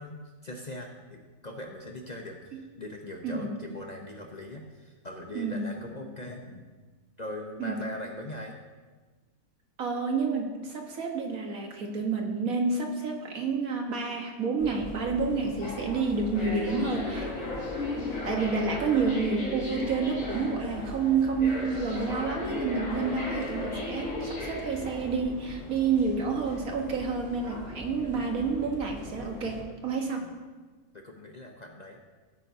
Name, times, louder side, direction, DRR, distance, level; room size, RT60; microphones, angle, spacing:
voice 1, 0.0-6.7 7.2-8.5 18.2-18.6 30.1-30.4 30.9-32.0, left 1 dB, 35° left, 1 dB, 0.8 m, -41 dB
voice 2, 3.2-3.6 5.4-5.7 7.6-7.8 9.8-17.3 18.2-30.3, right 4 dB, 70° right, 2 dB, 1.7 m, -29 dB
sound 1, 14.6-29.6, left 2 dB, 60° left, 2.7 m, -37 dB
15.5 x 9.2 x 2.7 m, 1.4 s
omnidirectional pair, 1.5 m